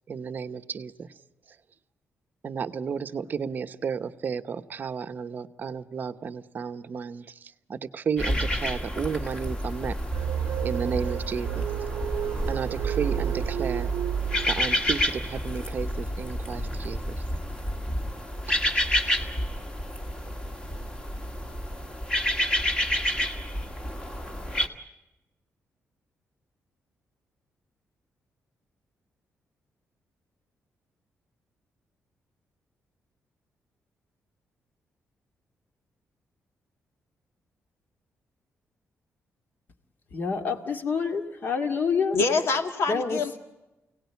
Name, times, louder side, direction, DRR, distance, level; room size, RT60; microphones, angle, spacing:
voice 1, 0.1-1.1 2.4-10.0 10.6-11.7 12.5-13.9 14.5-17.2, right 6 dB, 40° right, 10 dB, 0.9 m, -33 dB
sound 1, 8.2-24.7, equal, 15° left, 1.7 m, -30 dB
sound 2, 10.1-15.1, right 10 dB, 75° right, 0.8 m, -30 dB
voice 2, 40.1-42.2 42.9-43.2, left 5 dB, 40° left, 5 dB, 2.2 m, -27 dB
voice 3, 42.1-43.4, left 4 dB, 65° left, 6 dB, 2.2 m, -25 dB
29.0 x 18.0 x 9.5 m, 1.0 s
wide cardioid pair, 180°, 5 cm